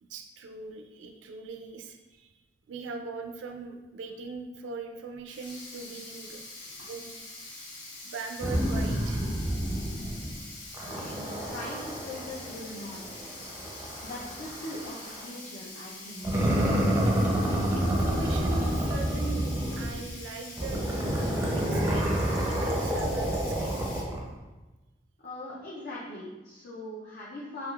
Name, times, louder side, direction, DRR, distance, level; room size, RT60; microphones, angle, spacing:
voice 1, 0.0-2.3 2.7-6.4 6.8-7.2 8.0-9.3 17.7-23.9, right 4 dB, 70° right, 4 dB, 0.3 m, -41 dB
Sink (filling or washing), 5.3-24.0, left 2 dB, 80° left, 0.9 m, -44 dB
sound 1, 8.4-10.4 10.7-15.3 16.2-20.1 20.6-24.3, equal, 15° right, 0.5 m, -29 dB
voice 2, 10.8-13.3 14.0-16.4 25.2-27.7, left 1 dB, 55° left, -6 dB, 0.5 m, -41 dB
3.5 x 2.9 x 2.3 m, 1.1 s
head